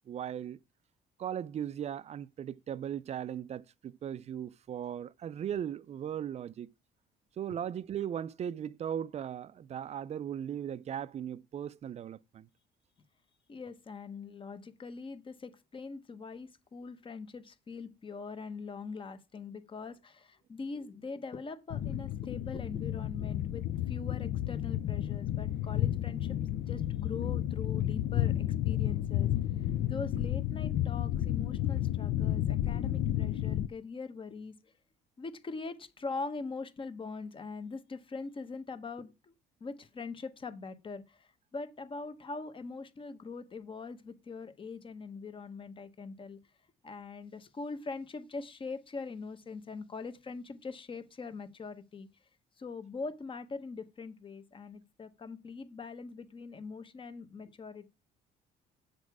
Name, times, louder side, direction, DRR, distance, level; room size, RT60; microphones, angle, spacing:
voice 1, 0.1-0.6 1.2-6.7 7.4-12.5, right 9 dB, 40° right, 0.4 m, -38 dB
voice 2, 13.5-29.3 29.9-34.7 35.2-39.3 39.6-46.4 46.8-52.1 52.6-57.9, left 4 dB, 30° left, 1.1 m, -42 dB
sound 1, 21.7-33.7, left 12 dB, 65° left, 0.6 m, -31 dB
8.3 x 6.5 x 4.8 m
cardioid pair, 110°, 17 cm